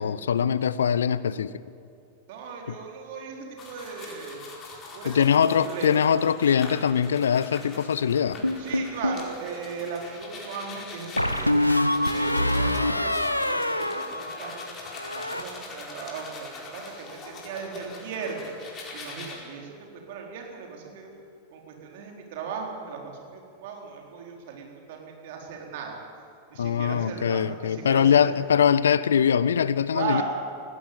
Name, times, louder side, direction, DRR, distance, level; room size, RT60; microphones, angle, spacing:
voice 1, 0.0-1.5 5.1-8.4 26.6-30.2, left 8 dB, 65° left, 18 dB, 0.6 m, -22 dB
voice 2, 2.3-4.4 4.9-6.1 8.6-11.6 12.1-18.6 18.9-21.1 21.5-26.0 26.5-28.3 29.9-30.2, right 6 dB, 50° right, 1 dB, 4.1 m, -37 dB
sound 1, 3.6-19.4, left 3 dB, 30° left, 4.8 m, -42 dB
sound 2, 8.4-9.3 11.2-14.7 15.0-15.4, left 1 dB, 85° left, 0.9 m, -25 dB
19.0 x 16.0 x 8.7 m, 2.4 s
figure-of-eight pair, 90°, 0 cm